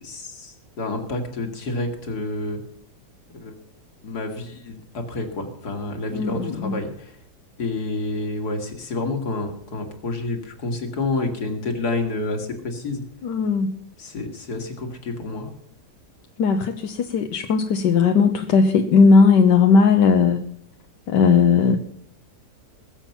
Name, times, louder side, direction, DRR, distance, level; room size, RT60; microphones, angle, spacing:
voice 1, 0.0-2.6 3.4-3.5 4.0-7.2 7.6-13.0 14.0-15.5, left 2 dB, 65° left, 4 dB, 2.6 m, -29 dB
voice 2, 6.1-6.7 13.2-13.7 16.4-20.4 21.1-21.8, left 5 dB, 85° left, 5 dB, 1.6 m, -17 dB
21.5 x 7.2 x 5.8 m, 0.65 s
omnidirectional pair, 1.9 m